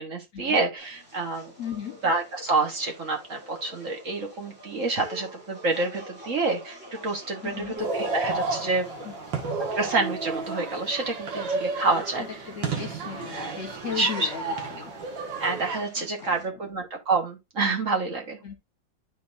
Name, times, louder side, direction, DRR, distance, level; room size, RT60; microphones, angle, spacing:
voice 1, 0.0-1.5 2.0-6.8 7.0-8.9 9.7-12.3 13.3-13.6 14.0-14.3 15.4-18.4, right 3 dB, 45° right, 1.6 m, -28 dB
sound 1, 0.8-16.5, right 1 dB, 25° right, 5.7 m, -46 dB
voice 2, 1.6-2.0 7.4-7.8 9.0-9.1 12.2-15.0 15.9-16.4 18.4-18.6, left 7 dB, 50° left, 1.2 m, -36 dB
sound 2, 7.8-15.8, right 3 dB, 75° right, 2.2 m, -32 dB
12.0 x 4.2 x 2.6 m
omnidirectional pair, 2.1 m